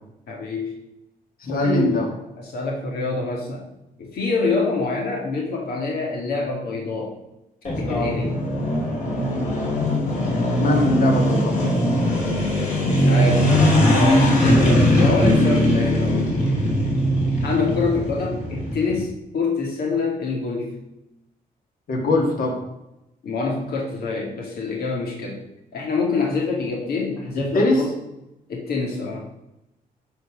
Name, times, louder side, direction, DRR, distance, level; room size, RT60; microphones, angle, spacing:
voice 1, 0.3-0.7 1.4-2.0 2.4-3.7 4.0-7.2 7.8-8.4 12.6-16.3 17.4-20.8 23.2-25.4 25.7-27.9 28.5-29.3, left 3 dB, 85° left, -1 dB, 2.1 m, -26 dB
voice 2, 1.5-2.1 10.6-11.6 21.9-22.6 27.5-27.8, left 1 dB, 70° left, 0 dB, 2.3 m, -21 dB
sound 1, 7.6-19.0, equal, 50° left, 3.3 m, -20 dB
11.0 x 4.6 x 6.1 m, 0.89 s
wide cardioid pair, 145°, 15 cm